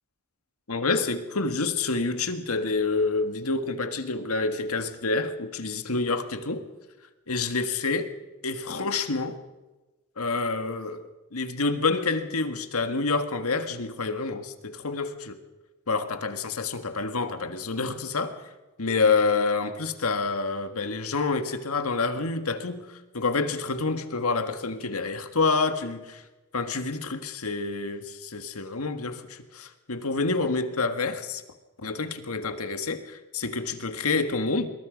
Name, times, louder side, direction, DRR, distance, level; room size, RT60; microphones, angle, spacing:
voice 1, 0.7-6.6 7.3-8.1 8.4-9.4 10.2-15.4 15.9-18.4 18.8-26.2 26.5-31.4 31.8-34.7, left 3 dB, 85° left, 1.7 m, -28 dB
25.5 x 21.5 x 5.2 m
head